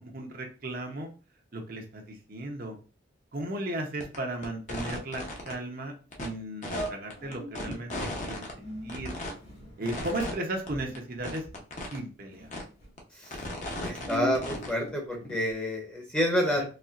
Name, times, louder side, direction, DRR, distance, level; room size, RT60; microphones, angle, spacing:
voice 1, 0.0-1.1 1.5-2.0 2.3-2.8 3.3-5.9 6.2-7.9 8.2-8.5 8.8-9.1 9.8-11.4 11.9-12.5, right 1 dB, 50° right, 2 dB, 0.7 m, -35 dB
sound 1, 4.0-4.2 4.4-5.5 6.1-6.3 6.6-8.5 8.9-9.3 9.9-10.3 10.7-10.8 11.0-11.1 11.2-12.0 12.5-12.6 13.0-14.7, left 1 dB, 40° left, 0.8 m, -35 dB
sound 2, 6.1-6.2 6.7-7.8 8.5-12.0 12.3-12.9 13.5-15.5, left 2 dB, 55° left, 2.1 m, -40 dB
voice 2, 13.8-16.6, equal, 5° left, 0 dB, 0.8 m, -29 dB
4.2 x 3.2 x 2.5 m, 0.35 s
head